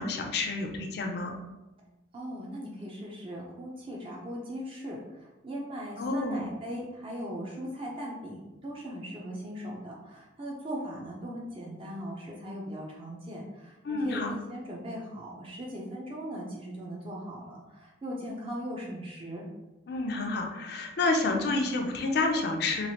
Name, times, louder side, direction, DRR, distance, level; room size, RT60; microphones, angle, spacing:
voice 1, 0.0-1.4 6.0-6.4 13.8-14.3 19.9-22.9, left 3 dB, 55° left, 3 dB, 0.4 m, -29 dB
voice 2, 2.1-19.4, equal, 30° right, -3 dB, 0.5 m, -39 dB
3.0 x 2.4 x 2.8 m, 1.0 s
head